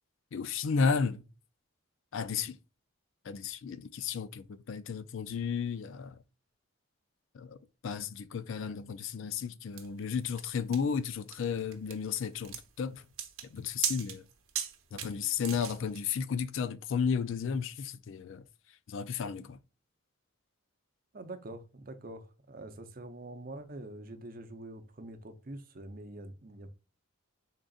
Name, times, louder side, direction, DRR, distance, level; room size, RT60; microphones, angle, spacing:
voice 1, 0.3-1.2 2.1-2.6 3.3-6.2 7.3-7.6 7.8-13.0 13.5-14.2 14.9-18.4 18.9-19.6, left 6 dB, 60° left, 0.3 m, -33 dB
sound 1, 9.8-16.0, right 9 dB, 75° right, 0.8 m, -38 dB
voice 2, 21.1-26.7, right 1 dB, 40° right, 0.6 m, -45 dB
3.9 x 3.7 x 2.3 m
head